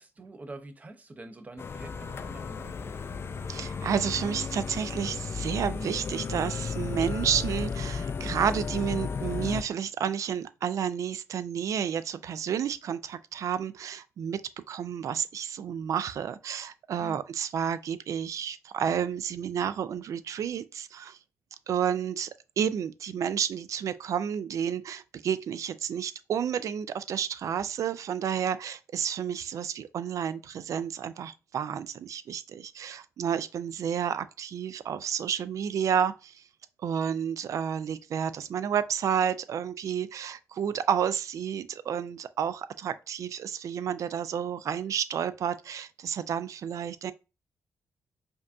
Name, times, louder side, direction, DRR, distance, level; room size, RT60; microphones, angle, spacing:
voice 1, 0.0-3.0 17.0-17.2, right 2 dB, 25° right, 0.6 m, -46 dB
sound 1, 1.6-9.6, left 5 dB, 45° left, 0.3 m, -34 dB
voice 2, 3.5-14.4 14.7-21.2 21.7-22.3 22.6-36.4 36.8-47.1, right 8 dB, 65° right, 0.3 m, -31 dB
5.1 x 2.3 x 2.5 m
cardioid pair, 85°, 6 cm